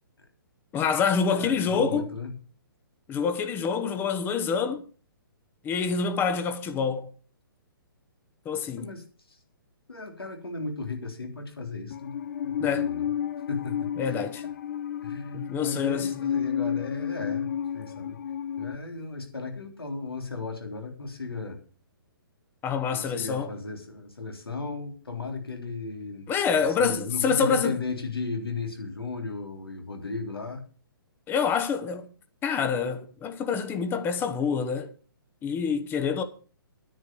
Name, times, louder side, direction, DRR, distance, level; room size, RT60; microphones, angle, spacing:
voice 1, 0.7-2.1 3.1-4.8 5.6-7.1 8.4-8.9 12.6-12.9 14.0-14.4 15.3-16.2 22.6-23.5 26.3-27.8 31.3-32.1 32.4-34.9 35.4-36.2, left 6 dB, 15° left, 1.0 m, -26 dB
voice 2, 1.3-2.3 8.8-9.0 9.3-9.4 9.9-12.1 12.4-13.1 13.5-14.2 15.0-18.2 18.6-21.6 22.9-26.3 26.7-30.6, left 3 dB, 85° left, 3.4 m, -35 dB
Musical instrument, 11.9-18.8, left 9 dB, 45° left, 0.5 m, -31 dB
10.0 x 8.2 x 6.9 m
figure-of-eight pair, 135°, 12 cm